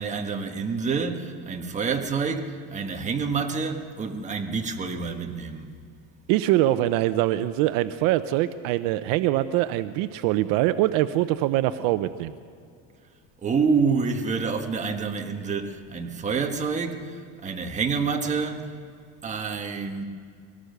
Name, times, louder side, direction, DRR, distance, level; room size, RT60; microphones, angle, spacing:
voice 1, 0.0-5.7 13.4-18.7 19.2-20.1, right 5 dB, 20° right, 1.5 m, -27 dB
voice 2, 6.3-12.3, right 14 dB, 65° right, 0.8 m, -23 dB
22.5 x 18.0 x 6.8 m
cardioid pair, 150°, 36 cm